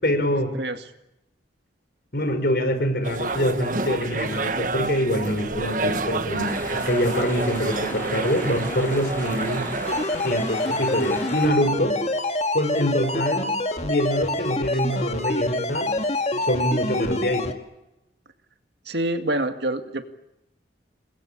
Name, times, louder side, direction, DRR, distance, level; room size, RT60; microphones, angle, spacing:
voice 1, 0.0-0.5 2.1-9.7 10.2-12.0 12.5-13.5 13.8-16.0 16.3-17.5, equal, 55° left, 8 dB, 5.2 m, -25 dB
sound 1, 3.0-10.0, right 3 dB, 45° right, 1.4 m, -29 dB
sound 2, 6.4-11.5, left 1 dB, 10° left, 7.7 m, -36 dB
sound 3, 9.9-17.5, left 2 dB, 35° left, 2.1 m, -26 dB
voice 2, 18.9-20.0, right 1 dB, 65° right, 7 dB, 2.1 m, -26 dB
29.0 x 21.5 x 8.7 m, 0.92 s
head